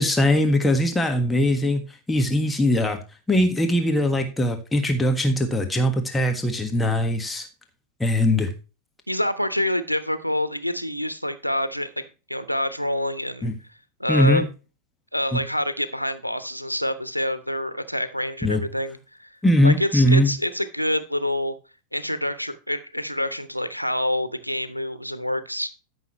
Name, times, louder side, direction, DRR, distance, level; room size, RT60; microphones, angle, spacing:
voice 1, 0.0-1.8 2.1-3.0 3.3-7.5 8.0-8.5 13.4-13.5 14.1-14.5 15.3-15.4 18.4-18.6 19.4-20.3, left 1 dB, 10° left, 5 dB, 1.5 m, -21 dB
voice 2, 9.1-12.0 12.3-13.5 14.0-14.5 15.1-19.3 19.6-21.5 21.9-25.7, left 1 dB, 90° right, 12 dB, 1.0 m, -27 dB
13.5 x 6.3 x 3.1 m, 0.31 s
figure-of-eight pair, 90°, 0 cm